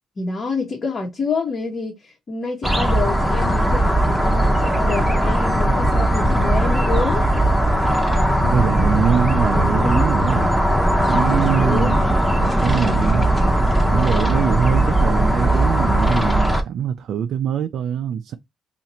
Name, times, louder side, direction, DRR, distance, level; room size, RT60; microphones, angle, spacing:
voice 1, 0.2-7.2 9.5-10.1 11.4-11.9 14.2-14.7, left 4 dB, 40° left, 1.1 m, -27 dB
sound 1, 2.6-16.6, right 1 dB, ahead, 0.9 m, -18 dB
voice 2, 8.4-10.6 11.0-12.1 12.4-13.3 13.8-18.3, right 8 dB, 70° right, 0.4 m, -23 dB
2.8 x 2.5 x 4.2 m
cardioid pair, 90°, 0 cm